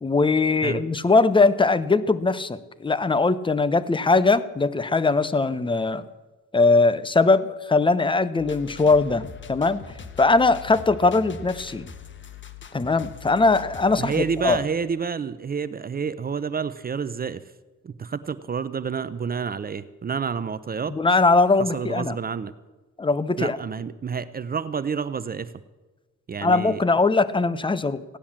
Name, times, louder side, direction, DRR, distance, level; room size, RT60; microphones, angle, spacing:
voice 1, 0.0-6.0 6.5-9.8 10.2-11.9 12.7-14.6 20.9-22.2 23.0-23.6 26.4-28.2, left 3 dB, 15° left, 15 dB, 0.8 m, -20 dB
sound 1, 8.4-14.6, left 6 dB, 40° left, 1.2 m, -42 dB
voice 2, 14.0-17.4 17.8-20.9 21.6-22.5 23.4-25.5 26.3-26.8, right 6 dB, 30° right, 15 dB, 0.6 m, -29 dB
16.0 x 10.0 x 7.4 m, 1.2 s
cardioid pair, 90°, 30 cm